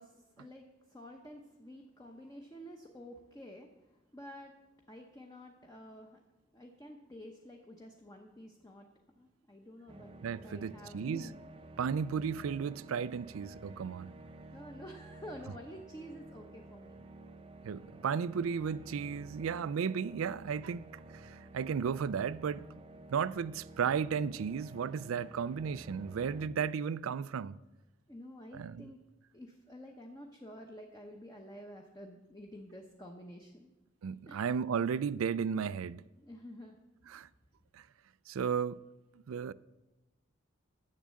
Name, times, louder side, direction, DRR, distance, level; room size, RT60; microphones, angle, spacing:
voice 1, 0.0-4.5 4.9-6.2 6.5-8.9 9.2-10.1 10.4-11.4 14.5-17.0 26.3-26.7 28.1-29.0 29.3-33.7 34.3-34.4 36.2-36.8, equal, 15° left, 0.8 m, -50 dB
sound 1, 9.9-26.5, right 2 dB, 25° right, 0.6 m, -52 dB
voice 2, 10.2-11.2 11.8-14.1 17.6-22.7 23.1-27.6 28.5-28.9 34.0-36.0 37.1-37.3 37.7-37.9 38.3-38.8 39.3-39.5, right 6 dB, 80° right, 0.4 m, -34 dB
10.5 x 7.4 x 7.5 m
head